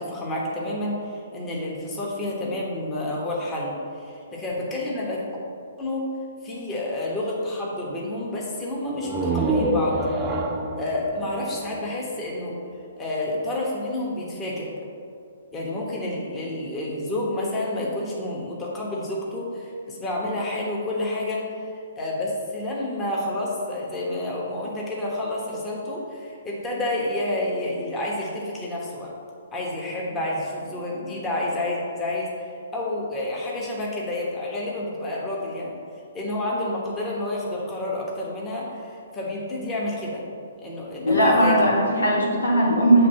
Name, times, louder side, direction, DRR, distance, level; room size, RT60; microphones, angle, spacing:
voice 1, 0.0-5.2 5.8-6.1 6.4-10.0 10.8-12.6 13.0-14.7 15.5-21.5 22.0-29.1 29.5-35.8 36.1-40.2 40.6-41.6, left 1 dB, 20° left, -4 dB, 1.2 m, -29 dB
sound 1, 8.9-12.6, right 2 dB, 20° right, 0.6 m, -27 dB
voice 2, 41.1-43.1, right 1 dB, 85° left, -4 dB, 1.7 m, -18 dB
7.3 x 3.4 x 5.5 m, 2.4 s
figure-of-eight pair, 130°, 0 cm